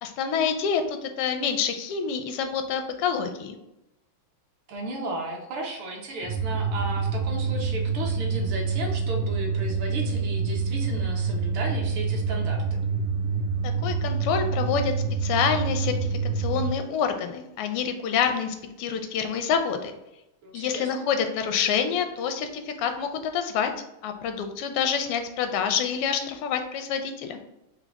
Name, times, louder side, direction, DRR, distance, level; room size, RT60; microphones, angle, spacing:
voice 1, 0.0-3.6 13.6-14.9 15.2-15.9 16.4-19.9 20.5-23.7 24.0-27.4, left 7 dB, 85° left, 6 dB, 1.5 m, -27 dB
voice 2, 4.7-12.8 20.4-21.1, right 2 dB, 70° right, 0 dB, 1.5 m, -34 dB
sound 1, 6.2-16.7, right 4 dB, 90° right, 1.8 m, -27 dB
4.8 x 2.2 x 3.4 m, 0.88 s
omnidirectional pair, 2.4 m